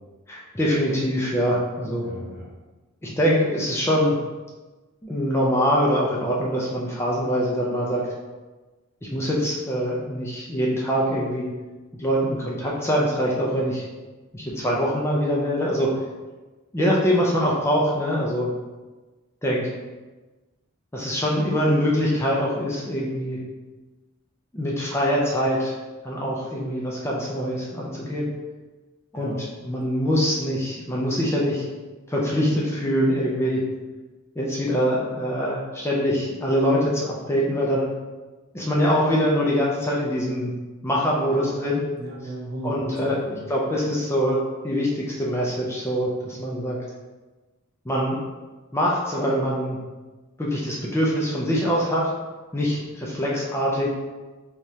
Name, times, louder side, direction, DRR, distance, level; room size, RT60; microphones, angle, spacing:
voice 1, 0.3-2.1 3.0-4.2 5.0-8.0 9.1-11.5 12.0-13.8 14.3-15.9 16.7-18.5 19.4-19.7 20.9-23.4 24.5-25.7 26.0-28.3 29.1-31.7 32.1-33.6 34.4-37.9 38.5-40.5 40.8-41.8 42.6-44.4 44.6-46.8 47.9-48.2 48.7-49.8 50.4-52.1 52.5-53.9, equal, 10° left, -4 dB, 0.5 m, -24 dB
voice 2, 2.0-2.5 29.1-29.4 41.3-42.7 43.0-43.4, right 1 dB, 50° right, -3 dB, 0.8 m, -35 dB
3.5 x 3.1 x 2.7 m, 1.2 s
head